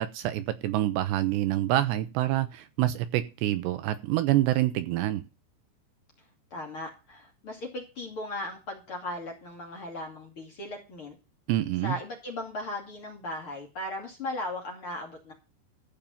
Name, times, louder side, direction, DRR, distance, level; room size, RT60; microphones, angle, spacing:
voice 1, 0.0-5.2 11.5-12.0, right 14 dB, 80° right, 2.7 m, -26 dB
voice 2, 6.5-11.2 11.8-15.3, left 1 dB, 35° left, 2.7 m, -37 dB
14.5 x 5.4 x 7.1 m
omnidirectional pair, 5.4 m